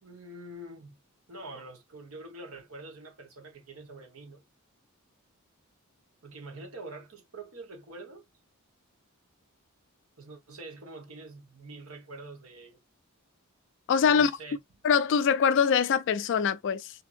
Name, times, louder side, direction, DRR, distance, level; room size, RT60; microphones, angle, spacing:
voice 1, 0.0-1.0 1.3-4.4 6.2-8.2 10.2-12.8 14.0-14.6, right 2 dB, 70° right, 1.1 m, -45 dB
voice 2, 13.9-14.3 14.8-16.9, left 6 dB, 55° left, 0.3 m, -23 dB
2.9 x 2.6 x 2.4 m
head